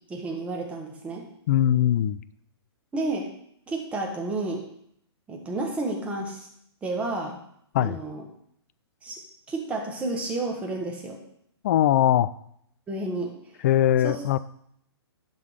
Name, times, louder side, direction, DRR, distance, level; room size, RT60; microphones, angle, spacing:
voice 1, 0.1-1.2 2.9-3.3 3.7-4.7 5.3-6.5 6.8-7.4 7.8-8.2 9.0-9.2 9.5-11.2 12.9-13.3 14.0-14.2, right 2 dB, 10° right, 0 dB, 1.4 m, -31 dB
voice 2, 1.5-2.2 7.7-8.0 11.6-12.3 13.6-14.4, left 11 dB, 35° left, 16 dB, 0.4 m, -21 dB
11.0 x 4.0 x 6.4 m, 0.70 s
hypercardioid pair, 155°, 14 cm